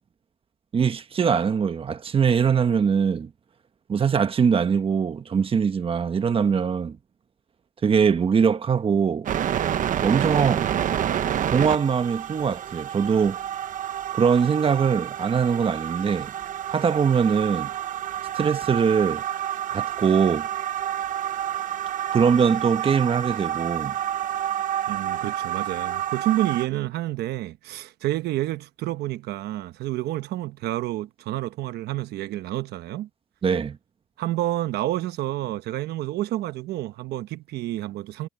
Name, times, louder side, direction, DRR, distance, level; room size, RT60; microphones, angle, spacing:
voice 1, 0.7-3.3 3.9-7.0 7.8-9.3 10.0-10.7 11.5-13.4 14.1-16.3 16.7-17.7 18.3-19.2 19.7-20.5 22.1-23.9 33.4-33.8, right 6 dB, 35° right, 1.3 m, -22 dB
sound 1, 9.3-26.7, right 10 dB, 50° right, 1.1 m, -29 dB
voice 2, 24.9-33.1 34.2-38.3, right 15 dB, 75° right, 1.0 m, -29 dB
cardioid pair, 110°, 17 cm